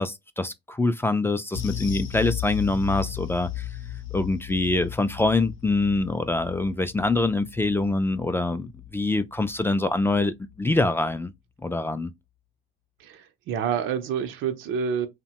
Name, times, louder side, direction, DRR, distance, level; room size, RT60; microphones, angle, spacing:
voice 1, 0.0-3.7 4.1-11.3 11.6-12.1, left 2 dB, 10° left, 0.3 m, -25 dB
sound 1, 1.5-10.2 10.5-10.7 11.1-11.2, left 12 dB, 75° left, 0.7 m, -36 dB
voice 2, 13.0-15.1, right 7 dB, 90° right, 0.6 m, -28 dB
2.9 x 2.1 x 2.8 m
cardioid pair, 90°, 20 cm